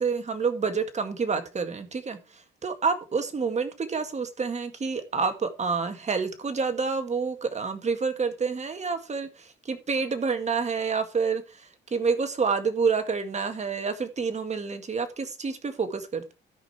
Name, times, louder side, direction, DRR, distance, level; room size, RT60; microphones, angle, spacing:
voice 1, 0.0-16.3, right 5 dB, 35° right, 8 dB, 1.9 m, -28 dB
13.5 x 5.3 x 4.4 m, 0.31 s
cardioid pair, 90°, 20 cm